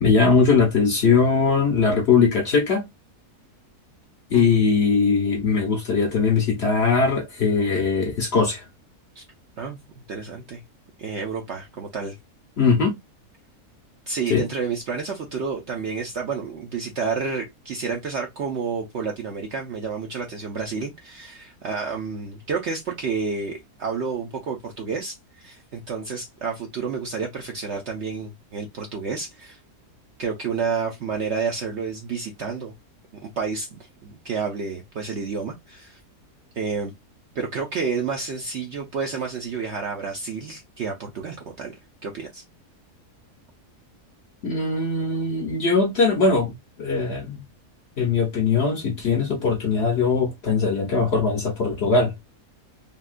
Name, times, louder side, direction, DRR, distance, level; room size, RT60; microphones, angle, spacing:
voice 1, 0.0-2.9 4.3-8.6 12.6-13.0 14.3-14.4 44.4-47.4 48.0-52.1, left 4 dB, 50° left, 0.8 m, -20 dB
voice 2, 4.3-4.7 9.2-9.3 9.6-9.8 10.1-10.6 11.0-12.2 14.1-29.6 30.2-32.7 33.4-36.0 36.5-36.9 37.4-41.8 42.0-42.4, right 5 dB, 60° right, 0.7 m, -30 dB
3.6 x 2.3 x 2.4 m
omnidirectional pair, 1.7 m